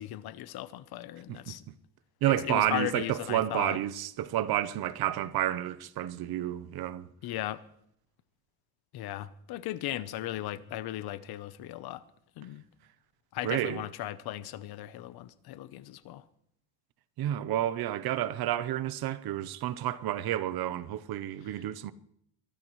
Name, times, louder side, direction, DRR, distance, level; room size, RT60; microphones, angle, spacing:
voice 1, 0.0-1.6 2.4-3.8 7.2-7.6 8.9-12.0 12.4-12.6 13.3-16.2, left 14 dB, 85° left, 0.9 m, -37 dB
voice 2, 1.3-1.7 2.2-7.1 13.4-13.8 17.2-21.9, right 12 dB, 75° right, 0.8 m, -30 dB
22.5 x 13.5 x 3.2 m
cardioid pair, 145°, 37 cm